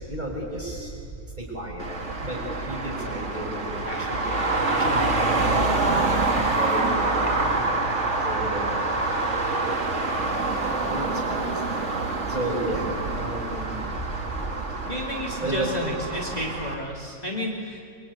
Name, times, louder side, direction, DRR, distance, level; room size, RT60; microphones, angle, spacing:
voice 1, 0.1-0.9 1.4-1.8 2.2-2.4 2.6-5.4 5.8-7.3 8.2-8.9 10.2-10.5 10.9-12.0 12.3-12.9 13.1-13.8 15.4-15.7, right 1 dB, 25° right, -1 dB, 6.3 m, -33 dB
Traffic noise roadway noise, 1.8-16.7, right 3 dB, 50° right, 2.5 m, -26 dB
voice 2, 14.8-17.8, left 1 dB, 25° left, -2 dB, 3.0 m, -32 dB
26.0 x 23.5 x 9.7 m, 2.3 s
omnidirectional pair, 1.7 m